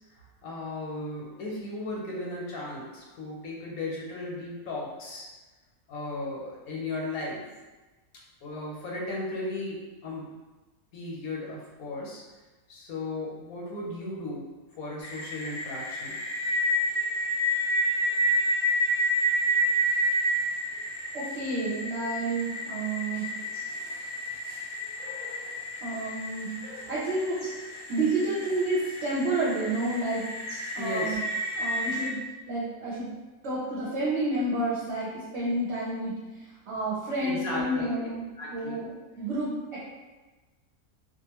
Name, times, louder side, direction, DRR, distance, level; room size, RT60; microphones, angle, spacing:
voice 1, 0.1-5.3 5.9-7.4 8.4-10.3 10.9-12.2 12.7-14.5 14.8-16.2 30.8-31.2 37.2-37.9 38.4-38.8, left 2 dB, 75° left, -3 dB, 1.1 m, -36 dB
sound 1, 15.0-32.1, equal, 45° left, 0.8 m, -30 dB
voice 2, 21.1-23.3 25.8-26.6 26.9-27.4 27.7-31.2 31.5-32.2 32.5-33.1 33.4-38.2 38.5-39.8, right 2 dB, 60° right, -8 dB, 0.9 m, -30 dB
2.5 x 2.4 x 2.9 m, 1.2 s
omnidirectional pair, 1.5 m